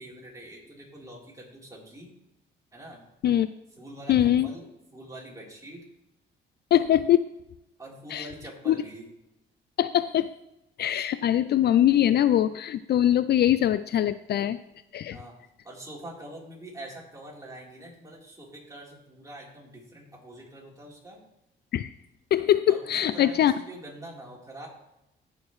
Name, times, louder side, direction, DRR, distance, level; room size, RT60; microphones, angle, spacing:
voice 1, 0.0-2.1 2.7-3.0 3.8-5.8 7.8-9.1 15.1-15.4 15.6-21.2 22.7-24.7, right 1 dB, 15° right, -4 dB, 3.8 m, -44 dB
voice 2, 4.1-4.5 6.7-7.2 8.1-8.3 8.7-8.8 9.8-10.3 10.8-14.6 14.9-15.2 21.7-21.9 22.3-23.5, left 11 dB, 55° left, 14 dB, 0.4 m, -22 dB
16.5 x 6.4 x 3.2 m, 0.87 s
cardioid pair, 90°, 20 cm